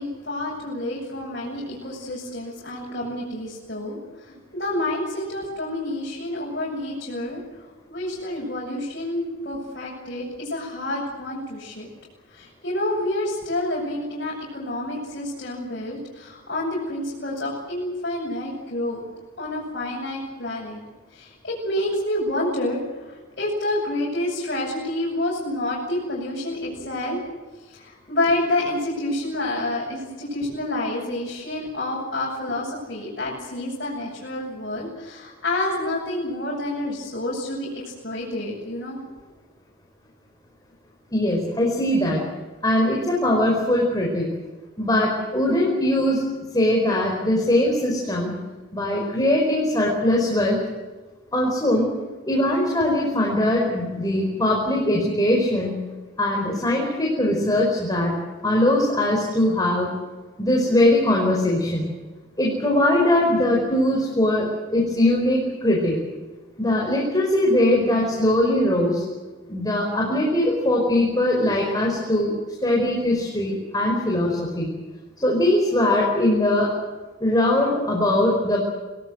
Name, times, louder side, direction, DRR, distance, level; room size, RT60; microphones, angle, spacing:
voice 1, 0.0-4.0 4.3-7.4 7.9-11.9 12.3-19.0 19.4-20.8 21.1-22.8 23.4-27.2 27.7-37.7 38.0-39.0, left 1 dB, 50° left, -6 dB, 7.4 m, -28 dB
voice 2, 41.1-42.2 42.6-44.3 44.8-46.2 46.5-48.4 48.7-50.6 51.3-51.9 52.3-55.8 56.2-58.1 58.4-59.9 60.4-61.9 62.4-65.9 66.6-69.0 69.5-72.3 72.6-74.7 75.2-76.7 77.2-78.6, left 1 dB, 20° left, -2 dB, 5.0 m, -21 dB
28.0 x 18.5 x 8.1 m, 1.2 s
head